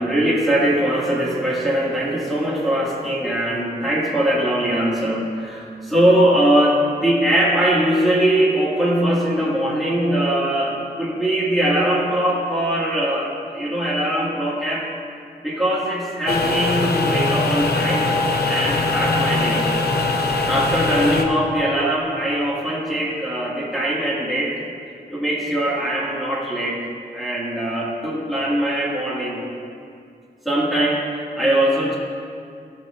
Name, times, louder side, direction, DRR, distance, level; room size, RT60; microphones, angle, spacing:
voice 1, 0.0-14.9 15.4-18.1 18.5-19.7 20.5-24.6 25.1-26.8 27.1-29.4 30.4-32.0, right 1 dB, ahead, -7 dB, 2.0 m, -21 dB
sound 1, 16.3-21.2, left 3 dB, 80° left, 0.8 m, -21 dB
17.0 x 6.2 x 2.5 m, 2.4 s
wide cardioid pair, 90°, 16 cm